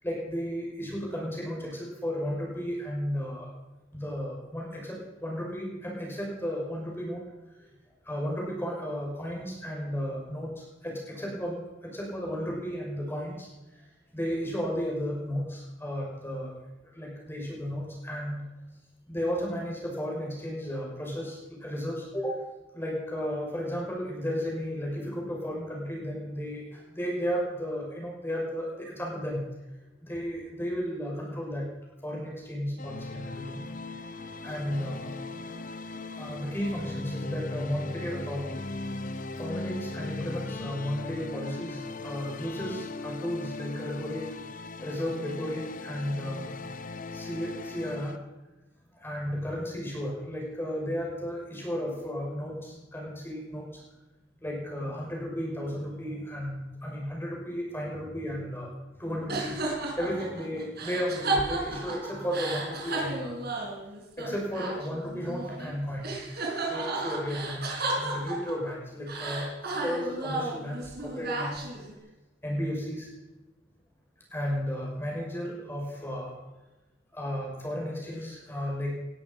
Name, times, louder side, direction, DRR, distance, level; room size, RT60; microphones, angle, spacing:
voice 1, 0.0-3.5 3.9-7.2 7.6-7.7 8.0-13.5 13.8-13.9 14.1-16.5 16.8-18.4 19.1-22.4 22.7-29.4 30.0-31.7 32.0-33.6 33.9-34.0 34.4-35.1 35.4-35.5 36.2-38.6 39.4-44.3 44.8-46.4 47.1-48.2 48.9-53.8 54.4-58.7 59.0-63.4 64.2-66.0 66.7-71.7 72.4-73.1 74.3-76.4 77.1-79.0, equal, 10° left, -3 dB, 5.9 m, -34 dB
sound 1, 32.8-48.2, left 3 dB, 40° left, 0.9 m, -38 dB
sound 2, 59.3-65.7 66.0-68.7 69.1-71.9, right 2 dB, 55° right, 4.4 m, -33 dB
19.5 x 13.0 x 5.4 m, 1.0 s
head